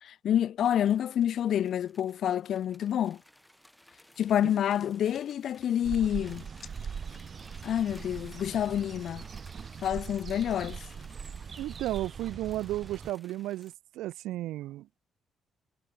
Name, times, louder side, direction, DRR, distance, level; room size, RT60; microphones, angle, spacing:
voice 1, 0.0-3.2 4.2-6.5 7.6-9.2 9.8-10.8, left 10 dB, 70° left, 0.5 m, -28 dB
sound 1, 0.6-13.7, equal, 5° left, 4.5 m, -58 dB
sound 2, 3.2-12.8 13.1-13.2, left 7 dB, 50° left, 6.9 m, -63 dB
sound 3, 5.8-13.1, right 6 dB, 45° right, 0.8 m, -41 dB
voice 2, 11.6-15.0, right 15 dB, 90° right, 1.1 m, -34 dB
cardioid pair, 90°, 0 cm